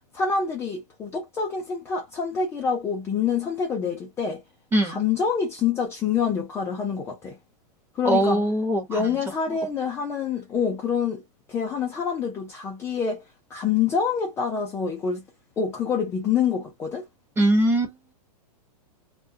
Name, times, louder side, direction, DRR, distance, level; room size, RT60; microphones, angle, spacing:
voice 1, 0.1-4.4 4.8-7.4 7.9-8.4 8.9-11.2 11.5-13.2 13.5-15.2 15.6-17.1, left 6 dB, 15° left, 0.5 m, -26 dB
voice 2, 4.7-5.0 8.0-9.2 17.4-17.9, right 1 dB, 10° right, 0.9 m, -22 dB
2.3 x 2.1 x 2.6 m
hypercardioid pair, 145°, 20 cm